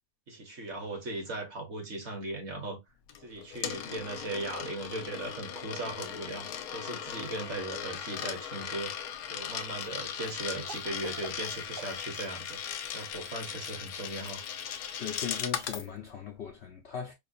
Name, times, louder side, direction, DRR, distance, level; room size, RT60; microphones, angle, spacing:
voice 1, 0.3-2.8 3.2-12.6 12.9-14.5, right 2 dB, 50° right, 1.3 m, -38 dB
Coin (dropping), 3.1-15.9, left 9 dB, 80° left, 1.1 m, -38 dB
Cough, 8.4-9.2 10.7-12.0, right 6 dB, 90° right, 0.4 m, -47 dB
voice 2, 15.0-17.1, left 8 dB, 60° left, 0.7 m, -38 dB
4.8 x 2.3 x 2.5 m
omnidirectional pair, 1.6 m